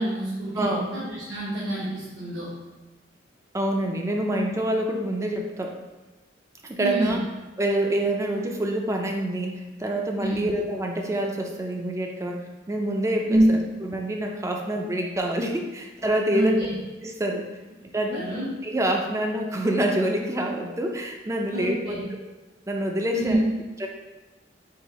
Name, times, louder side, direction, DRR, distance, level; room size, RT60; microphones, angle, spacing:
voice 1, 0.0-2.5 6.8-7.2 10.2-10.5 13.3-13.5 16.3-16.7 18.1-18.5 21.5-22.0 23.1-23.4, right 1 dB, 75° right, -10 dB, 1.2 m, -26 dB
voice 2, 0.6-0.9 3.5-5.8 6.6-7.2 7.6-16.6 17.0-17.5 17.9-18.2 18.6-22.0 22.7-23.4 23.8-23.9, right 1 dB, 15° right, 2 dB, 0.4 m, -26 dB
4.7 x 2.7 x 4.1 m, 1.1 s
head